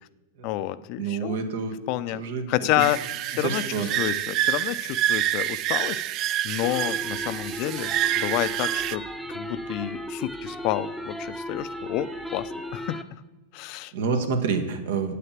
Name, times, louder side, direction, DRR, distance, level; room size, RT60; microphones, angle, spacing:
voice 1, 0.4-1.4 1.9-2.2 2.5-3.0 3.3-6.0 6.4-13.0 13.5-14.3, left 14 dB, 50° left, 15 dB, 0.5 m, -29 dB
voice 2, 1.0-1.8 2.1-2.5 3.4-3.9 13.9-15.2, right 5 dB, 75° right, 7 dB, 1.4 m, -27 dB
sound 1, 2.8-9.0, right 12 dB, 40° right, 0.4 m, -27 dB
sound 2, 6.6-13.0, equal, 5° right, 0.8 m, -36 dB
8.5 x 6.7 x 7.3 m, 1.2 s
hypercardioid pair, 125°, 0 cm